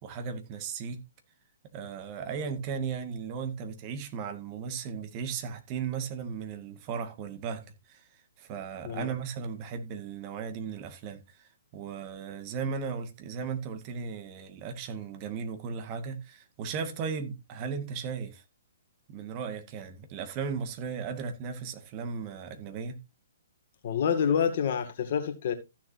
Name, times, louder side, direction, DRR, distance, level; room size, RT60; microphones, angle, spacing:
voice 1, 0.0-1.0 1.7-8.0 8.4-18.4 19.1-23.0, right 6 dB, 35° right, 2.0 m, -36 dB
voice 2, 23.8-25.5, left 7 dB, 50° left, 2.2 m, -27 dB
15.0 x 7.2 x 2.7 m
figure-of-eight pair, 130°, 0 cm